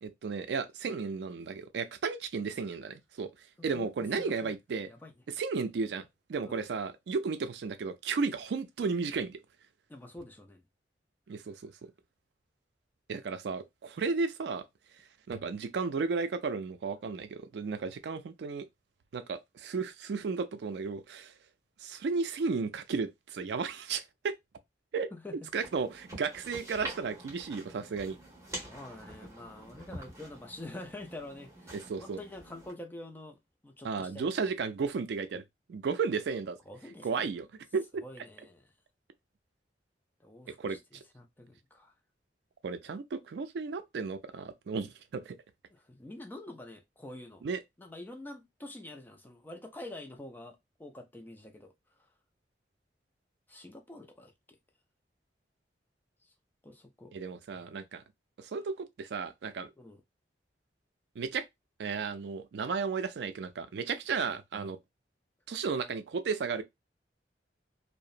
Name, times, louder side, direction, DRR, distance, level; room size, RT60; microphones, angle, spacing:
voice 1, 0.0-3.3 3.6-4.9 5.4-9.4 11.3-11.9 13.1-14.6 15.3-18.7 19.1-21.3 21.8-24.3 24.9-25.1 25.5-28.2 31.7-32.2 33.8-35.4 35.7-36.6 37.0-37.5 37.7-37.9 40.5-40.8 42.6-45.4 47.4-47.6 57.1-58.0 58.4-59.7 61.2-61.5 61.8-64.8 65.5-66.6, right 5 dB, 70° right, 0.4 m, -34 dB
voice 2, 3.6-4.6 4.9-5.1 6.4-6.7 9.9-10.6 25.1-25.5 28.6-34.5 36.7-37.3 38.0-38.7 40.2-41.9 45.7-47.4 47.8-51.7 52.0-52.1 53.5-54.3 56.2-56.3 56.6-57.1 59.8-60.0, left 1 dB, 10° left, 0.4 m, -47 dB
sound 1, 25.5-32.7, right 1 dB, 15° right, 1.1 m, -46 dB
2.8 x 2.0 x 2.4 m
head